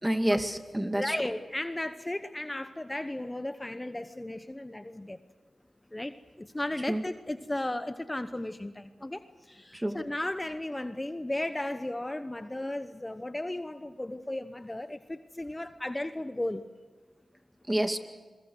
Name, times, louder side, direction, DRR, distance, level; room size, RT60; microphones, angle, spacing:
voice 1, 0.0-1.2 6.9-7.0 9.7-10.0 17.7-18.0, right 1 dB, 15° right, 7 dB, 2.2 m, -28 dB
voice 2, 0.9-5.2 5.9-6.1 6.4-16.6, left 1 dB, 20° left, 10 dB, 1.0 m, -35 dB
27.0 x 22.5 x 6.4 m, 1.4 s
cardioid pair, 45°, 0 cm